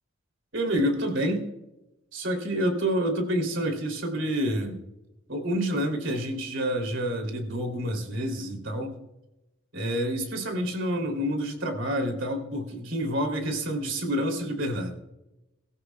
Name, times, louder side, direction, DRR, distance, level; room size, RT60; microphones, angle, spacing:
voice 1, 0.5-1.5 2.1-4.8 5.3-9.0 9.7-14.9, equal, 65° right, 4 dB, 3.0 m, -28 dB
24.0 x 14.5 x 2.3 m, 0.96 s
head